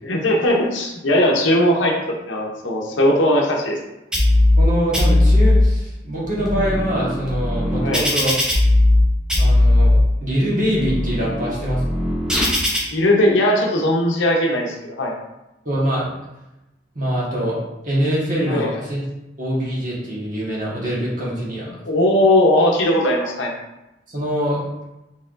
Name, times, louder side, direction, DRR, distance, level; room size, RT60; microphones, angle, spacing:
voice 1, 0.0-1.9 2.3-3.8 7.8-8.1 12.9-15.1 18.5-18.7 21.8-23.5, left 1 dB, 80° left, 0 dB, 0.7 m, -18 dB
sound 1, 4.1-4.6 4.9-5.6 6.2-9.0 9.3-10.0 10.6-12.8, left 1 dB, 5° right, 0.7 m, -17 dB
voice 2, 4.6-8.3 9.4-12.0 15.6-16.1 16.9-17.6 17.8-19.0 19.4-21.7 24.1-24.6, equal, 45° right, -5 dB, 1.3 m, -24 dB
4.3 x 3.4 x 2.5 m, 0.94 s
head